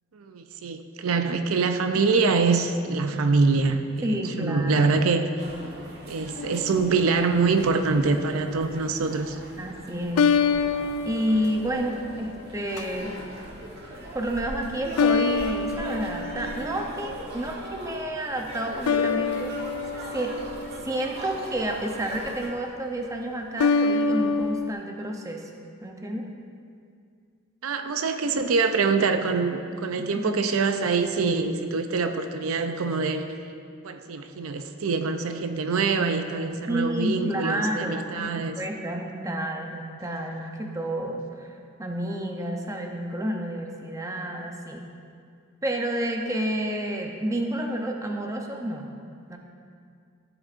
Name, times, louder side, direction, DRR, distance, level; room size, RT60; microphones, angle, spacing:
voice 1, 0.1-5.3 6.1-9.4 27.6-33.2 33.8-38.6, right 4 dB, 80° right, 7 dB, 0.5 m, -24 dB
voice 2, 4.0-4.9 9.6-10.3 11.0-13.2 14.1-19.7 20.1-20.3 20.8-25.4 25.8-26.3 30.2-30.3 36.7-41.5 41.8-44.9 45.6-48.9 49.3-49.4, right 1 dB, 15° right, 1 dB, 0.7 m, -30 dB
sound 1, 5.4-22.5, right 1 dB, 50° right, 1.3 m, -40 dB
sound 2, 6.4-7.2 10.2-12.2 12.8-13.2 15.0-16.9 18.9-21.3 23.6-24.7, left 5 dB, 85° left, 0.3 m, -26 dB
14.0 x 7.9 x 2.5 m, 2.3 s
head